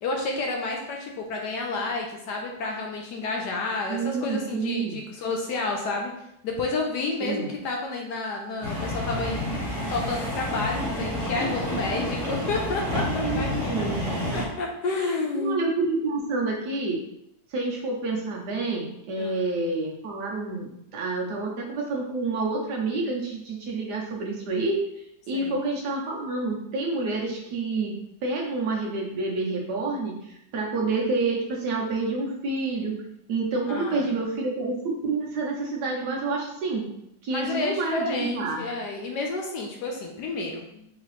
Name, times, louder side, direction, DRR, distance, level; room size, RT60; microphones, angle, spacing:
voice 1, 0.0-6.1 6.4-9.6 9.9-13.9 14.3-15.7 19.2-19.5 25.3-25.6 33.7-34.1 37.3-40.9, left 3 dB, 70° left, 1 dB, 1.1 m, -30 dB
voice 2, 3.9-5.0 7.2-7.5 13.1-14.3 15.3-17.0 17.5-24.8 25.3-27.9 28.2-32.9 33.3-36.8 37.2-38.6, right 3 dB, 65° right, -1 dB, 1.3 m, -28 dB
sound 1, 8.6-14.4, left 1 dB, 45° right, 1.5 m, -29 dB
4.8 x 2.9 x 3.1 m, 0.78 s
omnidirectional pair, 2.0 m